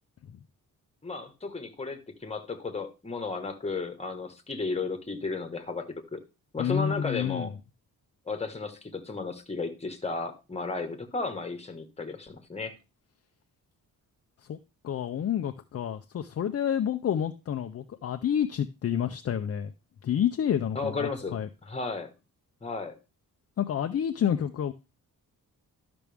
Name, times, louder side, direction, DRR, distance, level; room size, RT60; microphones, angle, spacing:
voice 1, 1.0-6.2 6.5-7.5 8.3-12.8 20.7-22.1 22.6-22.9, left 3 dB, 20° left, 1.4 m, -34 dB
voice 2, 6.6-7.5 14.5-14.6 14.8-19.7 20.0-21.5 23.6-24.7, left 9 dB, 45° left, 0.5 m, -29 dB
12.5 x 6.0 x 3.4 m
wide cardioid pair, 140°, 35 cm